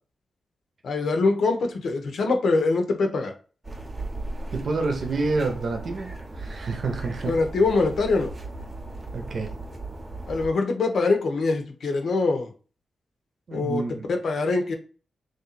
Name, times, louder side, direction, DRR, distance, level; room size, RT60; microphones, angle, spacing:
voice 1, 0.8-3.3 7.3-8.3 10.3-12.5 13.5-13.8 14.1-14.7, left 3 dB, 75° left, 4 dB, 0.9 m, -23 dB
sound 1, 3.6-10.5, right 2 dB, 25° right, 0.8 m, -37 dB
voice 2, 4.5-7.4 9.1-9.5 13.5-14.2, right 3 dB, 55° right, 3 dB, 0.8 m, -28 dB
3.4 x 2.7 x 4.1 m, 0.37 s
wide cardioid pair, 135°, 0 cm